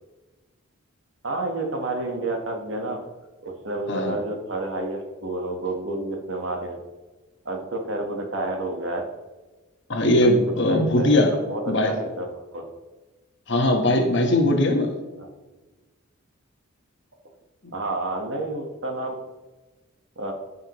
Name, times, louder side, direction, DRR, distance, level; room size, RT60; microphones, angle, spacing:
voice 1, 1.2-3.0 3.4-6.8 7.4-9.0 10.2-10.4 10.7-12.6 15.2-15.3 17.7-19.2 20.2-20.3, right 2 dB, 60° right, 2 dB, 1.4 m, -30 dB
voice 2, 9.9-11.3 11.7-11.9 13.5-15.0, left 1 dB, 55° left, 3 dB, 1.3 m, -20 dB
14.5 x 5.5 x 3.1 m, 1.2 s
head